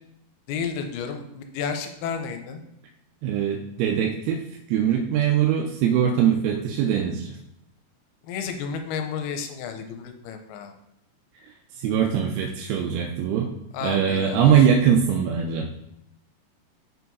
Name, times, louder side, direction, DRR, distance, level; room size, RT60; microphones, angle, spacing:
voice 1, 0.5-2.6 8.2-10.7 13.7-14.5, left 6 dB, 90° left, 5 dB, 2.6 m, -32 dB
voice 2, 3.2-4.4 4.7-7.4 11.8-13.5 13.8-15.7, right 8 dB, 85° right, 2 dB, 2.6 m, -22 dB
6.1 x 4.6 x 4.0 m, 0.82 s
omnidirectional pair, 4.5 m